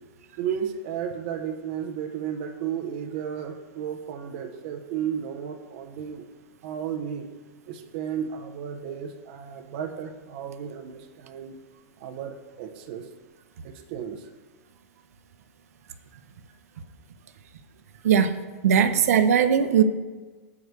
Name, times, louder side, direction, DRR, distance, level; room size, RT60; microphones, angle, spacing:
voice 1, 0.3-6.2 6.6-7.3 7.7-11.6 12.0-13.1 13.6-14.3 15.8-15.9 17.9-18.1, right 8 dB, 40° right, 4 dB, 0.6 m, -33 dB
voice 2, 18.0-18.4 18.6-19.8, right 8 dB, 90° right, 11 dB, 0.6 m, -19 dB
6.4 x 4.7 x 6.6 m, 1.4 s
supercardioid pair, 175°, 8 cm